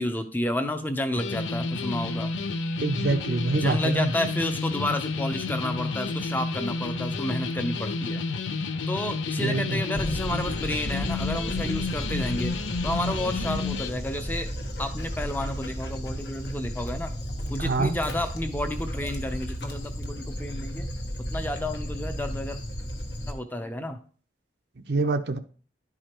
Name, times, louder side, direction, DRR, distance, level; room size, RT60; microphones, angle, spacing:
voice 1, 0.0-2.3 3.6-8.2 8.9-12.5 12.8-14.5 14.8-17.1 17.5-20.9 21.3-22.6 23.3-24.0, left 1 dB, 10° left, 8 dB, 0.6 m, -31 dB
sound 1, 1.2-13.9, left 4 dB, 85° left, 0.5 m, -30 dB
voice 2, 2.8-4.1 9.4-9.8 17.6-17.9 24.9-25.4, right 3 dB, 60° right, 8 dB, 0.6 m, -25 dB
Dog, 9.9-23.3, equal, 65° left, 1.2 m, -33 dB
11.0 x 4.9 x 3.0 m, 0.43 s
head